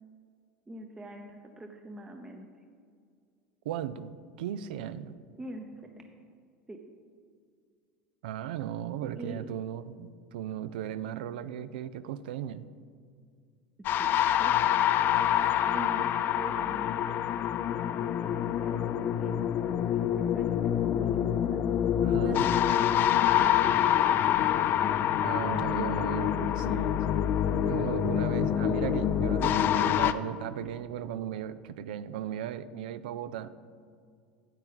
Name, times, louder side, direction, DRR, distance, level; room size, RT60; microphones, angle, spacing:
voice 1, 0.7-2.5 5.4-5.8 6.7-6.8 9.2-9.5 14.0-14.8 15.6-17.3 17.7-21.6 22.2-22.8 23.4-25.0 28.7-29.0, right 1 dB, 15° right, 3 dB, 0.7 m, -44 dB
voice 2, 3.7-5.1 8.2-12.7 22.0-22.5 25.2-27.0 27.7-33.5, right 10 dB, 75° right, 14 dB, 0.4 m, -36 dB
sound 1, 13.8-30.1, left 10 dB, 45° left, 0.3 m, -26 dB
8.8 x 8.2 x 3.8 m, 2.2 s
hypercardioid pair, 90°, 5 cm